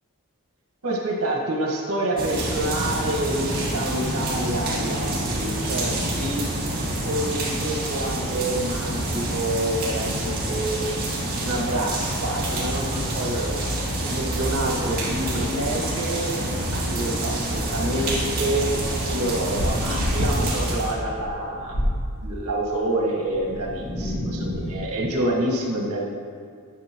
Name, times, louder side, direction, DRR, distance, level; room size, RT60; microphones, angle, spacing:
voice 1, 0.8-6.4 7.0-11.0 11.4-13.7 14.0-16.3 16.7-18.7 19.1-21.8 22.2-26.0, right 1 dB, 85° right, -2 dB, 1.5 m, -27 dB
sound 1, 2.2-20.9, right 1 dB, 40° right, 2.2 m, -27 dB
sound 2, 18.7-22.1 23.3-25.0, equal, 65° left, 1.3 m, -28 dB
11.5 x 6.6 x 3.0 m, 2.1 s
head